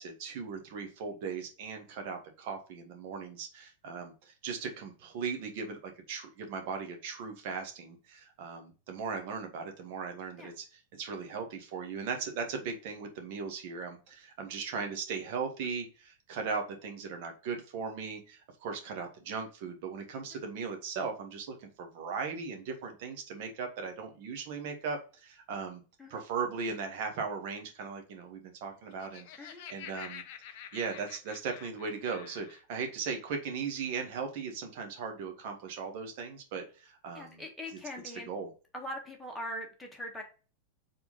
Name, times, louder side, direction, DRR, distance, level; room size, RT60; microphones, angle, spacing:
voice 1, 0.0-25.8 26.1-30.2 30.7-37.4 38.3-38.5, right 5 dB, 50° right, 4 dB, 1.5 m, -38 dB
Laughter, 28.8-32.6, left 10 dB, 50° left, 0.6 m, -48 dB
voice 2, 37.2-38.3 38.7-40.2, equal, 5° left, 0 dB, 1.7 m, -41 dB
4.8 x 3.8 x 5.3 m, 0.35 s
figure-of-eight pair, 90°, 0 cm